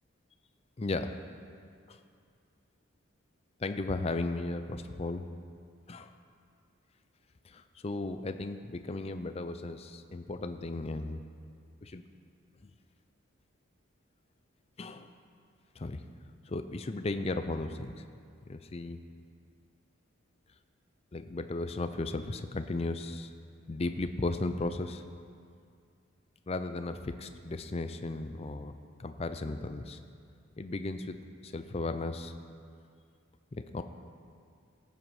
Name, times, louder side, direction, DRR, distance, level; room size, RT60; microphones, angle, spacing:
voice 1, 3.6-5.2 5.9-6.1 7.4-11.2 11.8-12.1 12.6-12.7 14.8-15.1 15.8-16.0 16.5-18.0 18.5-19.0 21.1-23.3 23.7-25.0 26.5-30.0 30.6-31.2 31.4-32.3 33.5-33.8, left 2 dB, 30° left, 9 dB, 0.4 m, -35 dB
16.0 x 7.8 x 4.8 m, 2.3 s
head